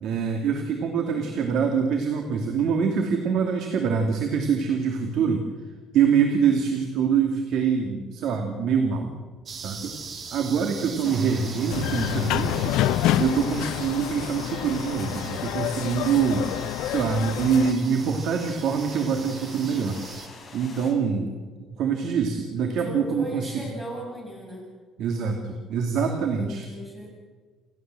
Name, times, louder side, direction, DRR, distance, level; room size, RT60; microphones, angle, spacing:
voice 1, 0.0-5.4 5.9-9.1 9.5-9.9 10.3-12.8 13.2-16.5 16.8-20.0 20.5-21.3 21.7-23.7 25.0-26.7, right 6 dB, 65° right, 4 dB, 2.5 m, -25 dB
sound 1, 9.4-20.3, right 5 dB, 35° right, 2.4 m, -42 dB
sound 2, 11.0-20.9, left 3 dB, 25° left, 5.8 m, -45 dB
sound 3, 11.7-17.7, left 13 dB, 85° left, 0.7 m, -27 dB
voice 2, 22.8-24.7 26.3-27.1, equal, 5° right, -2 dB, 6.6 m, -38 dB
29.5 x 13.0 x 7.7 m, 1.5 s
cardioid pair, 150°, 0 cm